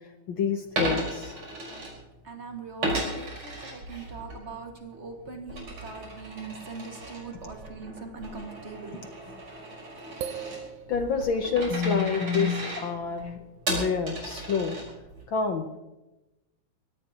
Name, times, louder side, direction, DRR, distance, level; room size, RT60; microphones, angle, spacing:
voice 1, 0.3-1.3 10.9-13.4 13.7-14.8 15.3-15.8, left 5 dB, 70° left, 5 dB, 1.1 m, -27 dB
Coin (dropping), 0.6-2.4 2.8-4.4 4.8-15.2, right 1 dB, 60° right, 6.1 m, -35 dB
voice 2, 2.2-9.0, right 4 dB, 25° right, 2 dB, 1.9 m, -41 dB
sound 1, 7.2-8.0 8.6-8.7 10.0-11.7, right 8 dB, 90° right, 2.3 m, -41 dB
24.0 x 17.0 x 3.0 m, 1.0 s
omnidirectional pair, 3.4 m